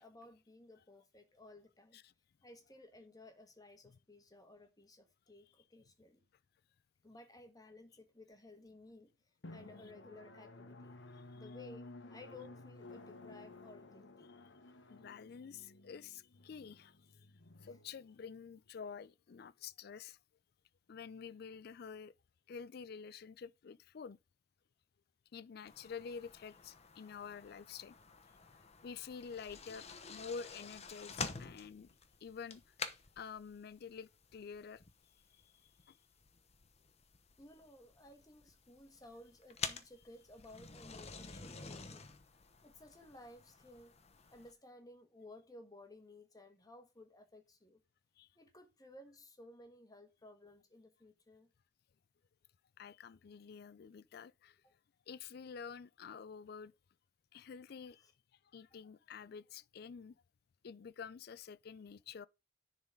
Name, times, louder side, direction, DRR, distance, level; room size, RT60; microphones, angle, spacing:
voice 1, 0.0-2.0 2.4-6.2 7.0-9.1 9.5-11.0 11.3-14.4 17.6-17.8 37.4-42.0 42.6-43.9 44.3-47.8 48.3-51.5 54.6-54.7 58.0-58.1, left 2 dB, 20° left, 1.5 m, -57 dB
Drum, 9.4-18.7, left 2 dB, 75° left, 1.0 m, -54 dB
voice 2, 14.9-17.3 17.6-20.2 20.9-22.1 22.5-24.2 25.3-27.9 28.8-31.9 32.2-32.7 33.2-34.8 35.4-36.0 48.2-48.3 52.8-54.6 55.1-56.7 57.3-58.1 58.5-60.2 60.6-62.3, left 6 dB, 55° left, 0.4 m, -49 dB
sound 1, 25.7-44.5, left 5 dB, 35° left, 0.9 m, -49 dB
10.0 x 4.1 x 5.2 m
head